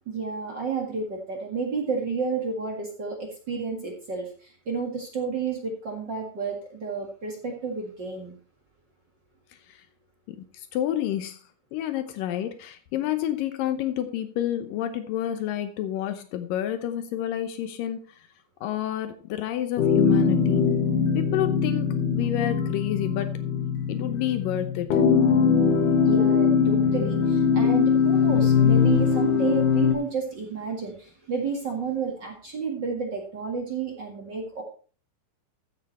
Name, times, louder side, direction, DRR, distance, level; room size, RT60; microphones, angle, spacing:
voice 1, 0.0-8.3 26.0-34.6, right 5 dB, 55° right, 1 dB, 1.2 m, -31 dB
voice 2, 10.3-11.4 11.7-18.3 18.6-20.7 21.1-23.4 23.9-25.0, left 11 dB, 85° left, 9 dB, 1.9 m, -29 dB
sound 1, 19.8-29.9, left 6 dB, 60° left, 2.5 m, -21 dB
14.5 x 7.5 x 4.2 m, 0.39 s
omnidirectional pair, 5.1 m